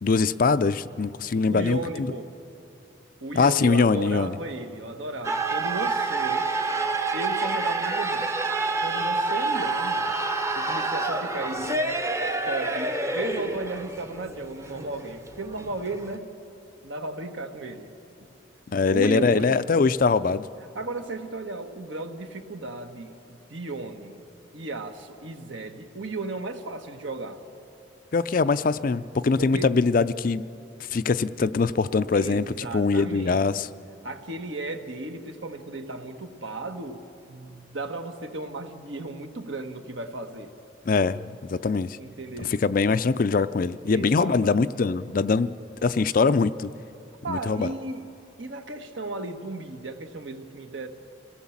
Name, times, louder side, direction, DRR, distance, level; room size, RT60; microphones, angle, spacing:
voice 1, 0.0-2.1 3.4-4.4 18.7-20.5 28.1-30.5 30.9-33.7 40.9-42.0 42.4-46.7 47.3-47.7, left 4 dB, 45° left, 14 dB, 0.4 m, -23 dB
voice 2, 1.5-2.4 3.2-6.5 7.1-8.3 8.8-10.1 10.5-12.0 12.5-16.3 16.8-17.9 18.9-19.6 20.7-24.2 24.5-27.4 29.4-29.7 32.1-33.6 34.0-37.0 37.3-40.5 42.0-42.5 43.9-44.6 47.2-48.0 48.4-50.9, right 2 dB, 70° right, 6 dB, 1.5 m, -35 dB
sound 1, 5.2-16.2, right 3 dB, 15° right, 0.8 m, -28 dB
27.0 x 17.5 x 7.3 m, 2.7 s
head